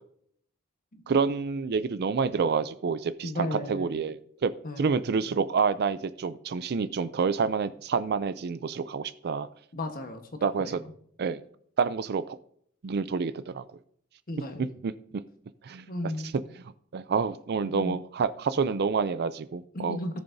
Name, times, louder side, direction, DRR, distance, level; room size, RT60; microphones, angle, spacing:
voice 1, 1.1-4.5 4.8-9.5 10.4-10.8 11.2-11.4 11.8-12.4 12.8-13.6 14.8-14.9 15.6-15.9 16.9-20.0, right 5 dB, 50° right, 14 dB, 0.4 m, -28 dB
voice 2, 3.2-4.0 4.6-5.0 9.7-10.8 14.3-14.7 15.9-16.3 17.6-18.0 18.7-18.8 19.7-20.2, left 1 dB, 45° left, 6 dB, 1.3 m, -35 dB
18.5 x 6.9 x 2.7 m, 0.64 s
head